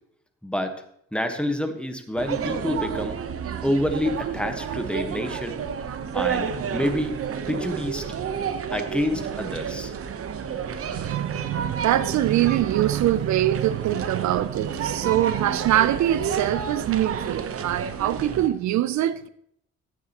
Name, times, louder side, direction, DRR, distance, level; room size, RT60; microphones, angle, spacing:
voice 1, 0.4-0.7 1.1-3.1 3.6-5.6 6.1-6.5 6.7-7.1 7.5-8.0 8.7-9.9, left 1 dB, 5° left, 1.2 m, -27 dB
sound 1, 2.2-18.5, right 7 dB, 50° right, 0.9 m, -31 dB
voice 2, 10.8-19.3, right 13 dB, 70° right, 0.5 m, -23 dB
13.5 x 8.4 x 2.9 m
cardioid pair, 90°, 30 cm